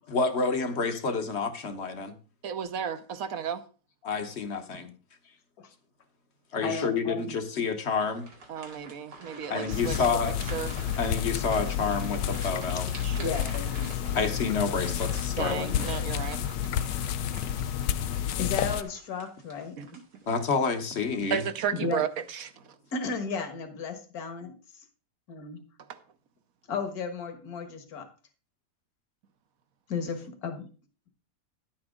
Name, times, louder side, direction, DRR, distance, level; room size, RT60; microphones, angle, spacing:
voice 1, 0.1-2.2 4.0-4.9 6.5-8.2 9.5-10.4 11.0-12.9 14.1-15.8 20.3-21.4, left 4 dB, 45° left, 1.2 m, -29 dB
voice 2, 2.4-3.6 8.5-10.0 10.5-10.7 13.0-13.4 15.4-16.4 19.8-20.0 21.3-22.5 25.9-26.0, right 8 dB, 60° right, 1.2 m, -33 dB
voice 3, 5.2-5.7 6.6-7.4 8.6-8.7 12.5-12.8 13.2-14.2 18.4-19.8 21.7-22.0 22.9-24.8 25.3-25.6 26.7-28.1 29.9-30.7, left 5 dB, 60° left, 2.0 m, -35 dB
sound 1, 7.9-20.6 21.1-21.2 21.8-22.3, right 3 dB, 80° right, 2.8 m, -47 dB
sound 2, 9.7-18.8, left 10 dB, 85° left, 1.2 m, -30 dB
10.5 x 8.7 x 3.7 m
omnidirectional pair, 1.8 m